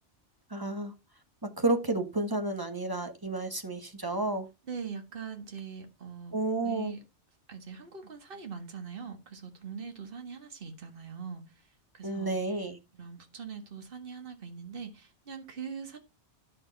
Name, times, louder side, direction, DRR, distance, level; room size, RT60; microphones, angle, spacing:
voice 1, 0.5-0.9 1.4-4.5 6.3-6.9 12.0-12.8, right 2 dB, 20° right, 1.5 m, -31 dB
voice 2, 4.7-7.0 7.5-12.4 12.9-16.0, right 6 dB, 50° right, 1.8 m, -42 dB
11.0 x 6.6 x 4.0 m
omnidirectional pair, 1.2 m